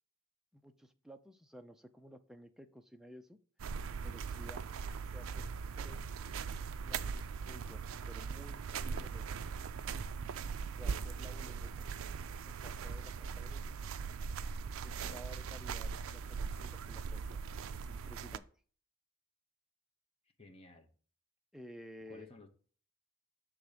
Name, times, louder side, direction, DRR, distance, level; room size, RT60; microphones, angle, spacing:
voice 1, 0.5-3.4 4.0-4.6 5.1-5.5 5.8-6.0 6.8-9.4 10.8-11.8 12.4-13.9 14.8-17.4 17.7-18.5 21.5-22.3, equal, ahead, 0.4 m, -54 dB
sound 1, 3.6-18.4, right 5 dB, 65° right, 0.4 m, -40 dB
voice 2, 15.0-15.6 20.4-20.9 22.1-22.5, left 2 dB, 25° left, 1.0 m, -56 dB
6.9 x 3.5 x 5.0 m
head